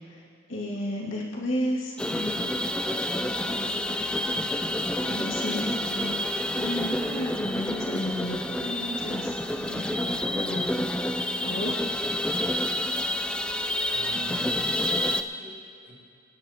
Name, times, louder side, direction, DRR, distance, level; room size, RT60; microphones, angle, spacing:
voice 1, 0.5-2.5 2.9-4.1 5.0-6.2 6.6-10.9 11.4-11.7, equal, 80° left, -4 dB, 2.3 m, -33 dB
sound 1, 2.0-15.2, left 1 dB, 5° left, 0.3 m, -28 dB
voice 2, 13.9-15.9, right 1 dB, 40° right, -6 dB, 3.1 m, -44 dB
24.0 x 10.5 x 2.9 m, 2.4 s
head